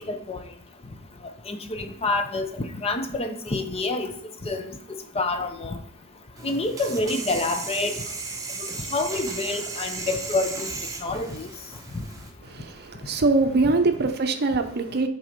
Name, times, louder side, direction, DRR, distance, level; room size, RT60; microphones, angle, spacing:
voice 1, 0.1-0.4 1.5-4.1 4.4-4.7 5.2-5.8 6.4-8.0 8.9-10.7 11.0-11.5 11.9-12.0, left 2 dB, 25° left, 0.6 m, -27 dB
sound 1, 6.4-12.3, right 3 dB, 15° right, 0.8 m, -35 dB
voice 2, 12.5-15.1, right 3 dB, 45° right, 0.6 m, -23 dB
6.2 x 4.1 x 5.1 m
head